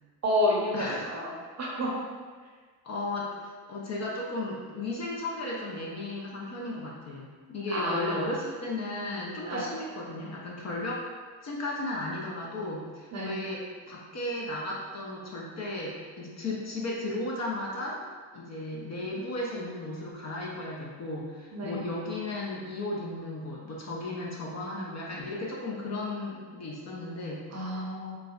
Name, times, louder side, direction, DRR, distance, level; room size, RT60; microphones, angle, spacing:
voice 1, 0.2-1.3 1.6-2.0 7.7-8.2 9.5-9.7 13.1-13.4 21.5-21.8 27.5-28.2, left 1 dB, 30° right, -4 dB, 0.8 m, -29 dB
voice 2, 0.7-1.1 2.8-11.0 11.4-18.0 18.3-27.5, left 2 dB, 35° left, -4 dB, 0.7 m, -35 dB
4.7 x 2.1 x 2.4 m, 1.5 s
hypercardioid pair, 55°, 50 cm